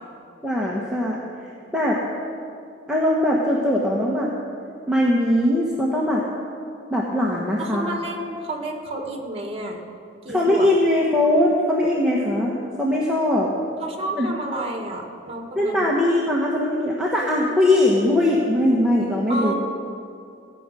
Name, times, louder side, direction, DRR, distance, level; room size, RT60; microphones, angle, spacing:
voice 1, 0.4-1.2 1.7-2.0 2.9-4.3 4.9-6.2 6.9-7.8 10.3-13.5 14.2-14.3 15.5-19.5, left 1 dB, 5° right, -5 dB, 1.2 m, -20 dB
voice 2, 7.6-9.8 10.2-10.7 13.8-15.9 19.3-19.5, right 1 dB, 30° right, 2 dB, 1.7 m, -30 dB
16.5 x 6.2 x 9.0 m, 2.5 s
head